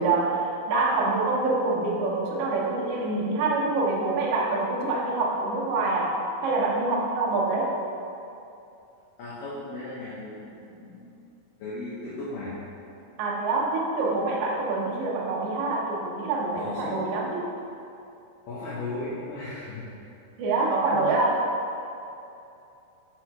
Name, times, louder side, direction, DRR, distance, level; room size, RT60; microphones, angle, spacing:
voice 1, 0.0-7.7 13.2-17.5 20.4-21.4, right 3 dB, 85° right, -4 dB, 1.3 m, -26 dB
voice 2, 9.2-11.2 11.6-12.6 16.6-17.2 18.5-20.0 20.4-21.2, left 2 dB, 70° left, -9 dB, 2.4 m, -36 dB
6.3 x 4.4 x 4.6 m, 2.7 s
omnidirectional pair, 4.3 m